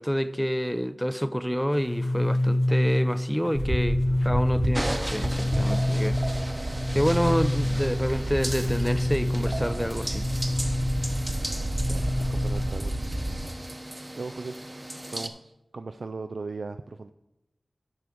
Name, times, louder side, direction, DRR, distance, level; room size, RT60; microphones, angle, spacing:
voice 1, 0.0-4.0 4.2-6.4 6.9-10.3, equal, ahead, 0.5 m, -28 dB
sound 1, 1.7-12.7, left 1 dB, 60° left, 0.7 m, -28 dB
sound 2, 3.5-13.5, right 1 dB, 50° right, 1.1 m, -31 dB
sound 3, 4.7-15.3, right 1 dB, 25° right, 0.9 m, -37 dB
voice 2, 11.9-13.1 14.2-14.6 15.1-17.1, right 3 dB, 80° right, 0.3 m, -38 dB
10.5 x 4.9 x 6.0 m
wide cardioid pair, 45°, 0 cm